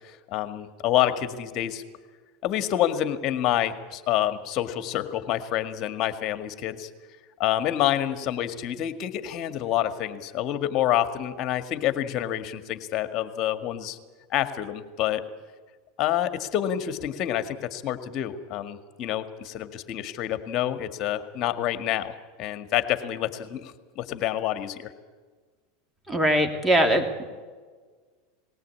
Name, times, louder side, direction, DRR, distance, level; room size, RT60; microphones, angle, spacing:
voice 1, 0.3-1.8 2.4-6.9 7.4-14.0 14.3-15.2 16.0-24.9, left 12 dB, 50° left, 9 dB, 1.8 m, -27 dB
voice 2, 26.1-27.0, equal, 15° right, 5 dB, 3.0 m, -21 dB
19.5 x 17.5 x 8.5 m, 1.5 s
hypercardioid pair, 100°, 0 cm